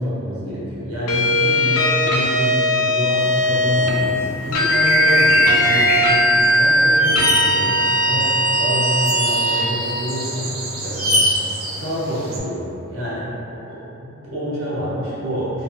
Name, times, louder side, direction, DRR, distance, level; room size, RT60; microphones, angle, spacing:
voice 1, 0.0-6.3 6.6-10.5 10.8-11.2 11.7-13.3 13.7-15.6, equal, 80° right, -9 dB, 0.9 m, -27 dB
sound 1, 1.1-3.9 4.5-9.7, equal, 80° left, 0.4 m, -18 dB
sound 2, 3.2-12.4, right 1 dB, 45° right, 0.4 m, -28 dB
sound 3, 6.4-6.5 7.0-7.4 9.0-9.6 11.0-11.2, left 1 dB, ahead, 0.9 m, -21 dB
2.9 x 2.3 x 2.8 m, 3.0 s
head